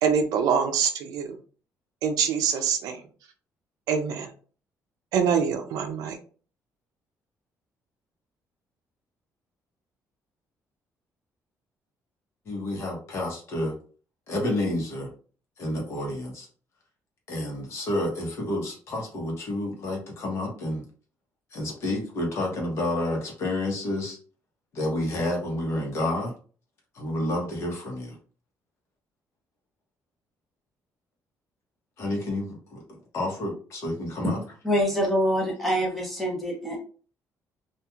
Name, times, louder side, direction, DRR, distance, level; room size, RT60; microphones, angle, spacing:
voice 1, 0.0-1.4 2.0-3.0 3.9-4.3 5.1-6.2, right 7 dB, 90° right, 5 dB, 0.4 m, -25 dB
voice 2, 12.5-13.7 14.3-15.1 15.6-16.5 17.3-20.8 21.5-24.2 24.7-26.3 26.9-28.2 32.0-34.4, left 1 dB, 50° left, 0 dB, 1.0 m, -30 dB
voice 3, 34.6-36.8, equal, ahead, -2 dB, 0.8 m, -25 dB
2.9 x 2.4 x 2.3 m, 0.40 s
cardioid pair, 180°, 6 cm